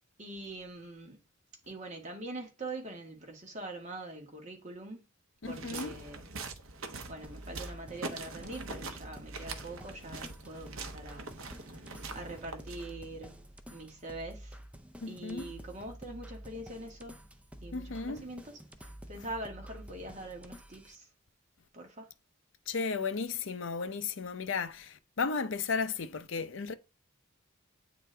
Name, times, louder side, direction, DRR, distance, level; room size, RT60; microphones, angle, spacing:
voice 1, 0.2-1.2 1.7-5.0 5.4-6.4 7.0-11.8 12.1-14.6 15.1-17.2 17.6-21.1 21.7-22.1, right 2 dB, 35° right, 1.6 m, -44 dB
voice 2, 5.4-5.9 15.0-15.5 17.7-18.3 22.7-26.7, left 4 dB, 60° left, 0.6 m, -34 dB
sound 1, 5.4-13.1, right 3 dB, 75° right, 0.9 m, -43 dB
sound 2, 7.2-21.0, equal, 5° right, 0.5 m, -49 dB
8.5 x 3.9 x 3.4 m
head